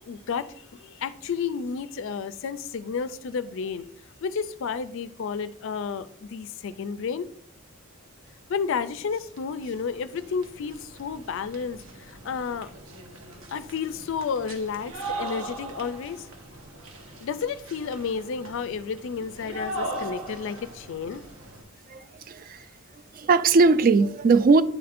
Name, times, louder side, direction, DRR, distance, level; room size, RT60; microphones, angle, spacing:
voice 1, 0.0-3.9 4.2-7.3 8.5-12.7 13.5-16.3 17.2-21.2, left 6 dB, 60° left, 0.4 m, -31 dB
sound 1, 8.6-8.7 8.9-21.6, right 2 dB, 60° right, 1.1 m, -40 dB
voice 2, 22.3-22.6 23.1-24.6, right 4 dB, 40° right, 0.3 m, -19 dB
9.8 x 4.2 x 2.5 m
head